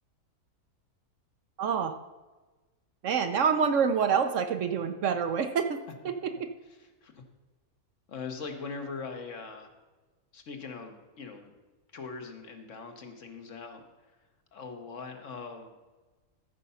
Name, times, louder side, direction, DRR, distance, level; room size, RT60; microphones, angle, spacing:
voice 1, 1.6-2.0 3.0-5.8, right 6 dB, 65° right, 8 dB, 0.9 m, -26 dB
voice 2, 6.6-7.2 8.1-9.7 10.3-11.5 11.9-13.8 14.5-15.8, left 4 dB, 55° left, 5 dB, 1.4 m, -41 dB
14.0 x 5.4 x 5.5 m, 1.2 s
omnidirectional pair, 1.6 m